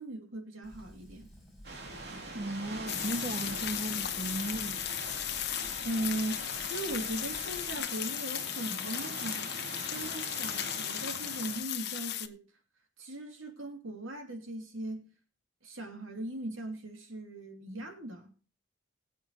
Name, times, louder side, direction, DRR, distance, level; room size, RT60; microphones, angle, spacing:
voice 1, 0.0-1.3 5.8-9.5 9.9-12.5 13.0-15.1 15.6-18.3, right 1 dB, 85° right, 2.9 m, -39 dB
Fire, 0.6-7.8, equal, ahead, 7.2 m, -54 dB
sound 1, 1.6-11.6, right 2 dB, 50° right, 2.8 m, -43 dB
voice 2, 2.3-4.8, right 1 dB, 35° right, 0.8 m, -36 dB
sound 2, 2.9-12.3, left 12 dB, 55° left, 0.9 m, -36 dB
21.0 x 8.2 x 3.1 m
head